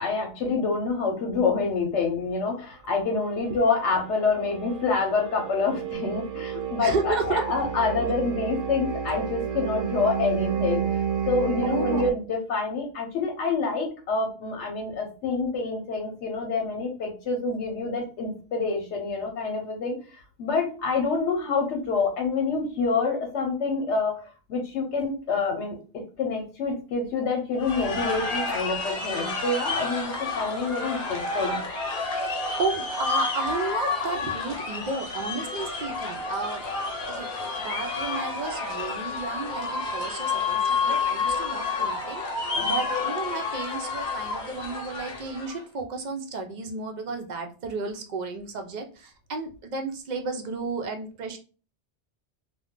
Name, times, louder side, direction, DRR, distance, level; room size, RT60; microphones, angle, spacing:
voice 1, 0.0-10.9 11.3-31.6 42.5-42.8, left 4 dB, 85° left, 2 dB, 1.0 m, -27 dB
sound 1, 3.6-12.1, right 8 dB, 80° right, 0.9 m, -31 dB
voice 2, 6.8-7.4 8.0-8.1 11.6-12.1 32.2-36.6 37.1-51.4, right 3 dB, 60° right, 5 dB, 0.5 m, -32 dB
sound 2, 27.6-45.6, left 4 dB, 60° left, 0.9 m, -30 dB
2.3 x 2.2 x 3.5 m, 0.36 s
omnidirectional pair, 1.2 m